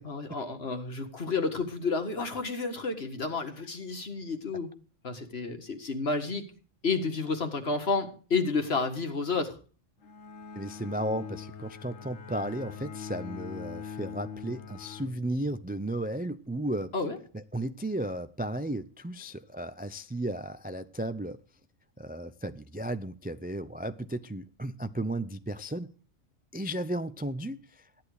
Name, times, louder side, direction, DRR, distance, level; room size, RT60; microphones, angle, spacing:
voice 1, 0.0-4.7 5.0-6.4 6.8-9.5 16.9-17.2, left 4 dB, 50° left, 1.9 m, -31 dB
Bowed string instrument, 10.0-15.8, left 6 dB, 85° left, 1.4 m, -43 dB
voice 2, 10.5-16.9 17.3-21.4 22.0-25.9 26.5-27.8, right 1 dB, 15° right, 0.3 m, -34 dB
14.5 x 10.5 x 4.9 m
omnidirectional pair, 1.3 m